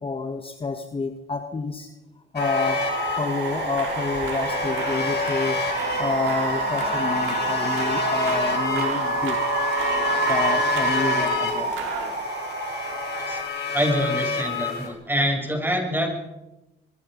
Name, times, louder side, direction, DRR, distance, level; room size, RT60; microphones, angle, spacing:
voice 1, 0.0-1.9 2.3-2.8 3.2-5.6 6.0-9.4 10.3-11.7, left 4 dB, 25° left, 6 dB, 1.8 m, -28 dB
sound 1, 2.4-14.9, left 5 dB, 55° left, 6.1 m, -29 dB
sound 2, 2.4-13.4, right 4 dB, 60° right, 5.0 m, -28 dB
sound 3, 3.4-12.1, right 5 dB, 85° right, 5.3 m, -36 dB
voice 2, 13.3-16.1, equal, 10° right, 2 dB, 7.7 m, -26 dB
24.0 x 23.5 x 5.5 m, 0.99 s
cardioid pair, 90°, 20 cm